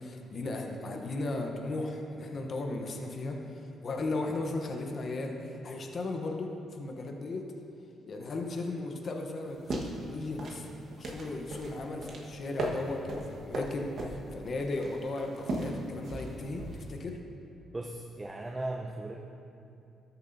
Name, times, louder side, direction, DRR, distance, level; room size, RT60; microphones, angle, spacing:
voice 1, 0.0-7.5 8.1-17.2, left 2 dB, 45° left, 2 dB, 0.8 m, -36 dB
sound 1, 9.5-17.0, right 1 dB, 60° right, 1.3 m, -38 dB
voice 2, 17.7-19.2, right 2 dB, 20° right, 1 dB, 0.6 m, -37 dB
13.5 x 6.9 x 2.7 m, 2.6 s
cardioid pair, 90°, 0 cm